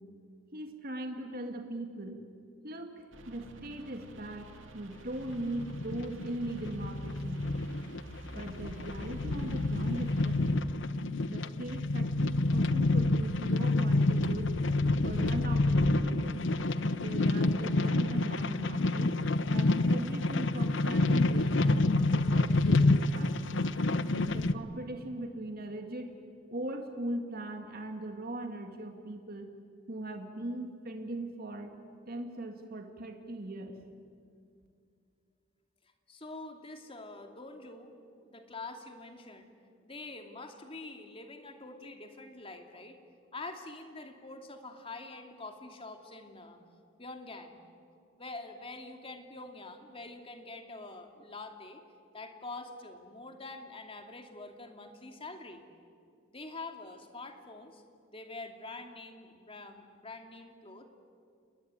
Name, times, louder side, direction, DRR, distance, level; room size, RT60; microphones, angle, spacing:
voice 1, 0.5-2.2 2.6-7.7 8.3-10.6 11.3-14.6 15.0-16.4 17.0-19.2 19.5-23.5 24.1-26.1 26.5-29.5 29.9-31.7 32.1-33.8, right 1 dB, 50° right, 4 dB, 2.2 m, -40 dB
sound 1, 3.1-10.5, right 1 dB, 70° right, 2.8 m, -49 dB
sound 2, 5.2-24.5, left 2 dB, 65° left, 0.9 m, -28 dB
voice 2, 36.1-37.9 38.2-39.5 39.8-43.0 43.3-46.6 47.0-47.6 48.2-51.8 52.1-55.6 56.3-57.8 58.1-60.9, left 2 dB, 30° left, 5 dB, 2.5 m, -45 dB
29.5 x 20.0 x 9.7 m, 2.3 s
head